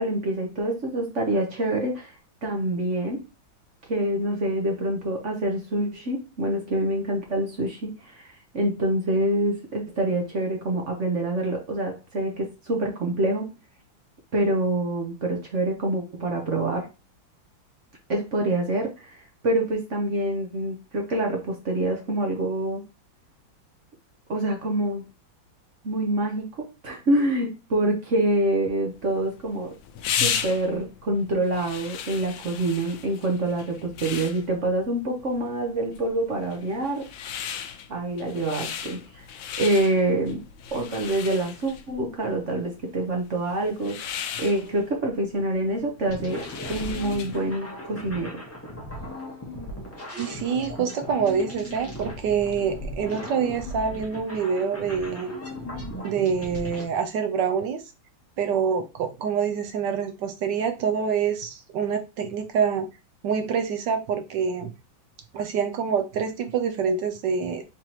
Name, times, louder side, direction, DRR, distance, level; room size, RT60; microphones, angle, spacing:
voice 1, 0.0-2.2 2.4-3.3 3.9-13.5 14.3-16.9 18.1-22.8 24.3-25.0 25.8-29.8 30.2-37.1 37.9-39.3 39.6-40.4 40.7-46.4 46.7-48.4, right 1 dB, 45° right, 1 dB, 1.0 m, -26 dB
sound 1, 29.0-47.5, left 8 dB, 80° left, 1.3 m, -36 dB
sound 2, 46.1-56.8, left 1 dB, 10° left, 0.9 m, -37 dB
voice 2, 50.2-55.3 56.0-57.8 58.4-62.9 63.2-64.7 65.3-67.6, right 6 dB, 70° right, 7 dB, 1.2 m, -26 dB
4.7 x 3.5 x 2.9 m, 0.27 s
omnidirectional pair, 2.2 m